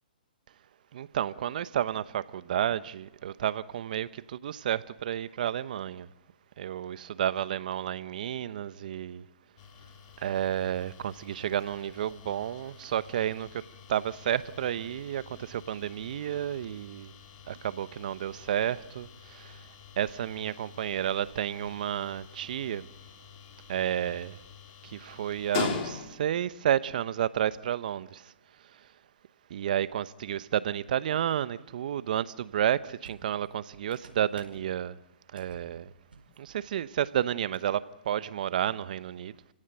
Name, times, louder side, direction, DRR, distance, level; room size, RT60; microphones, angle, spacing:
voice 1, 0.9-6.1 6.6-9.2 10.2-13.6 13.9-17.1 17.5-19.6 20.0-22.9 23.7-24.4 24.8-28.3 29.5-35.0 35.3-35.9 36.4-39.3, right 10 dB, 55° right, 0.9 m, -31 dB
sound 1, 9.6-26.4, left 7 dB, 35° left, 3.5 m, -43 dB
sound 2, 33.0-34.7 35.3-35.7 36.0-36.4 36.6-36.8 37.5-37.6, right 3 dB, 80° right, 5.0 m, -52 dB
28.5 x 16.5 x 9.1 m
hypercardioid pair, 140°, 5 cm